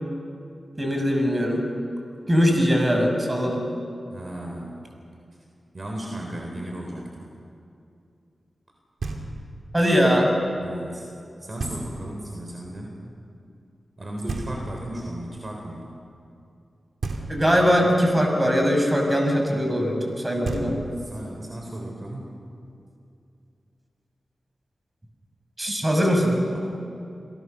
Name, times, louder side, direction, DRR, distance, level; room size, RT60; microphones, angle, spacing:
voice 1, 0.8-1.6 2.3-3.6 9.7-10.3 17.3-20.7 25.6-26.4, equal, 20° right, 2 dB, 6.0 m, -21 dB
voice 2, 4.1-4.8 5.7-7.3 10.6-11.1 11.4-13.0 14.0-15.9 20.5-22.4, right 1 dB, 45° right, 0 dB, 3.8 m, -35 dB
Knock, 9.0-9.7 11.6-12.2 14.3-15.1 17.0-17.8 20.1-20.2 20.4-21.2, right 3 dB, 75° right, 2.7 m, -33 dB
28.0 x 18.0 x 6.8 m, 2.5 s
cardioid pair, 55°, 0 cm